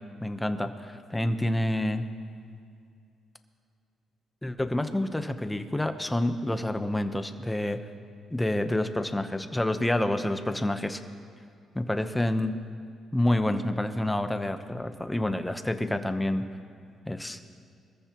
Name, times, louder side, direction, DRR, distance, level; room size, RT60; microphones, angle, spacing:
voice 1, 0.2-2.1 4.4-7.8 8.3-11.0 11.7-12.5 13.1-16.4 17.1-17.4, left 1 dB, 10° left, 8 dB, 1.0 m, -28 dB
24.5 x 14.5 x 3.1 m, 2.4 s
cardioid pair, 90°, 0 cm